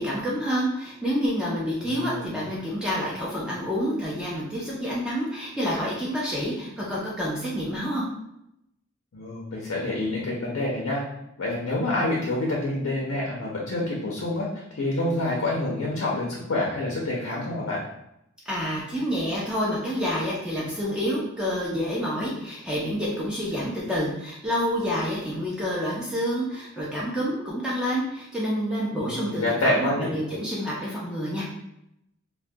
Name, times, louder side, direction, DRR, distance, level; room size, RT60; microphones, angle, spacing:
voice 1, 0.0-8.0 18.5-31.4, equal, 5° right, -6 dB, 0.4 m, -28 dB
voice 2, 1.8-2.4 9.1-11.0 11.4-17.8 29.0-30.1, left 1 dB, 85° left, -3 dB, 0.5 m, -27 dB
2.2 x 2.1 x 2.6 m, 0.82 s
head